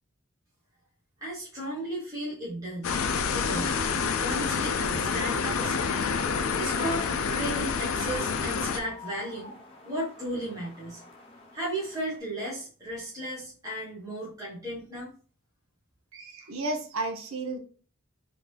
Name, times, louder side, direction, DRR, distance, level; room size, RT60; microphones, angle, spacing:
voice 1, 1.2-3.0 3.3-3.8 4.2-6.1 6.5-7.0 7.3-9.6 9.8-11.0 11.5-15.1, right 1 dB, 15° right, -8 dB, 1.1 m, -35 dB
sound 1, 2.8-8.8, left 5 dB, 70° left, 0.4 m, -28 dB
sound 2, 5.8-12.2, left 3 dB, 25° left, 0.8 m, -51 dB
voice 2, 16.1-17.6, right 2 dB, 70° right, 5 dB, 0.7 m, -33 dB
3.7 x 2.7 x 3.2 m, 0.41 s
head